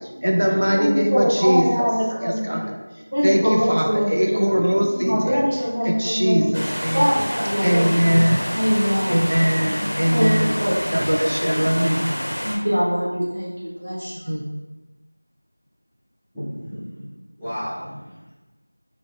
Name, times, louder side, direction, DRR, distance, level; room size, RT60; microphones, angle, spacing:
voice 1, 0.1-1.7 2.2-2.8 3.2-5.4 5.8-7.1 7.6-8.4 9.1-10.6 10.9-12.3 14.3-14.4, equal, 60° right, 1 dB, 0.5 m, -21 dB
voice 2, 0.7-2.6 3.1-4.5 4.9-6.5 6.9-7.9 8.5-9.2 9.6-10.3 10.6-10.8 12.4-13.5 13.8-14.1, equal, 40° right, -10 dB, 1.3 m, -22 dB
sound 1, 6.5-12.6, equal, 45° left, 0.6 m, -28 dB
voice 3, 16.3-17.0 17.4-18.3, equal, ahead, -24 dB, 0.4 m, -33 dB
3.6 x 2.3 x 3.5 m, 1.1 s
figure-of-eight pair, 180°, 0 cm